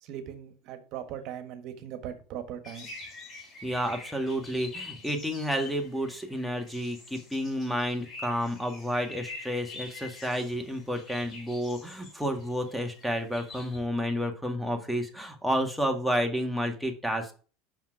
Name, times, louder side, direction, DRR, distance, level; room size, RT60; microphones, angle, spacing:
voice 1, 0.0-2.9, right 9 dB, 55° right, 1.4 m, -39 dB
sound 1, 2.6-13.8, left 3 dB, 40° left, 3.6 m, -46 dB
voice 2, 3.6-17.3, equal, ahead, 1.8 m, -30 dB
6.2 x 5.7 x 4.8 m
hypercardioid pair, 85°, 0 cm